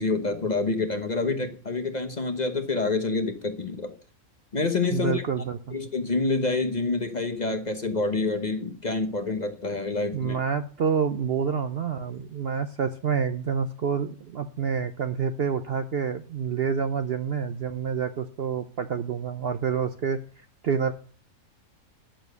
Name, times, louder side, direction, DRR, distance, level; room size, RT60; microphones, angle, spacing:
voice 1, 0.0-3.9 4.5-5.2 5.7-10.4, left 3 dB, 35° left, 6 dB, 1.1 m, -27 dB
voice 2, 4.9-5.8 10.1-20.2 20.6-20.9, right 6 dB, 55° right, 8 dB, 0.7 m, -28 dB
10.0 x 7.2 x 6.6 m, 0.41 s
omnidirectional pair, 1.5 m